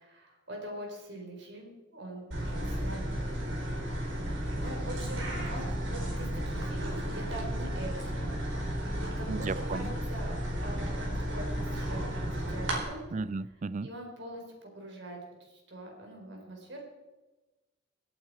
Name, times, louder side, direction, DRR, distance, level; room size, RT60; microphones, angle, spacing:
voice 1, 0.0-3.1 4.5-8.3 8.9-13.0 13.8-16.8, right 1 dB, 65° right, 1 dB, 4.1 m, -43 dB
sound 1, 2.3-12.8, equal, 80° right, 4.4 m, -33 dB
voice 2, 9.3-9.9 13.1-13.9, right 3 dB, 40° right, 19 dB, 0.4 m, -34 dB
26.0 x 8.9 x 4.7 m, 1.1 s
head